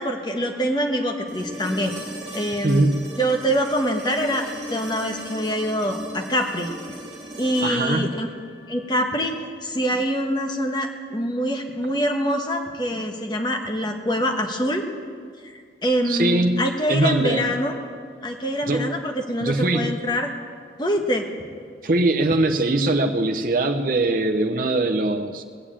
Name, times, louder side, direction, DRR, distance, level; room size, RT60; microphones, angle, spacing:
voice 1, 0.0-1.9 2.3-2.9 3.2-6.7 7.4-8.3 8.7-9.3 9.6-14.8 15.4-17.7 18.2-20.3 20.8-21.3, equal, 25° left, 3 dB, 1.3 m, -25 dB
sound 1, 1.3-9.3 11.5-11.6, equal, 20° right, 3.3 m, -38 dB
voice 2, 2.6-3.2 7.6-8.1 16.0-17.5 18.7-19.0 19.4-20.0 21.8-25.4, right 2 dB, 50° right, 4 dB, 0.7 m, -22 dB
19.0 x 7.1 x 8.7 m, 2.1 s
head